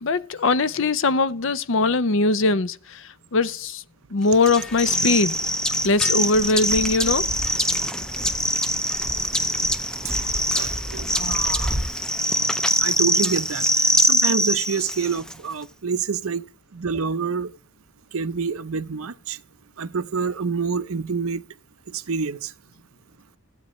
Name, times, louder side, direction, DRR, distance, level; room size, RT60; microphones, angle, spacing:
voice 1, 0.0-3.8 4.1-5.4 5.8-7.3, left 3 dB, 55° left, 0.6 m, -21 dB
sound 1, 4.4-15.3, left 1 dB, 5° left, 0.5 m, -23 dB
Fixed-wing aircraft airplane, 6.3-11.8, right 1 dB, 20° right, 0.9 m, -34 dB
voice 2, 10.4-11.8 12.8-16.4 16.7-17.5 18.1-19.4 19.8-21.4 21.9-22.5, right 5 dB, 70° right, 0.6 m, -27 dB
15.0 x 9.0 x 3.1 m
head